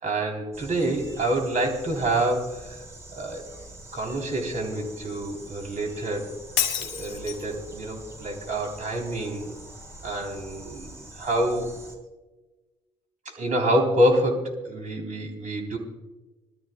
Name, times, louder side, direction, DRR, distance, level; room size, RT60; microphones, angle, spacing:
voice 1, 0.0-2.8 3.2-3.4 3.9-6.3 6.8-9.5 10.0-11.8 13.3-15.8, right 1 dB, 45° right, 2 dB, 3.5 m, -27 dB
sound 1, 0.5-12.0, right 2 dB, 15° right, 5.3 m, -45 dB
Shatter, 6.6-7.6, left 9 dB, 75° left, 1.3 m, -28 dB
22.5 x 13.0 x 2.3 m, 1.2 s
hypercardioid pair, 50°, 17 cm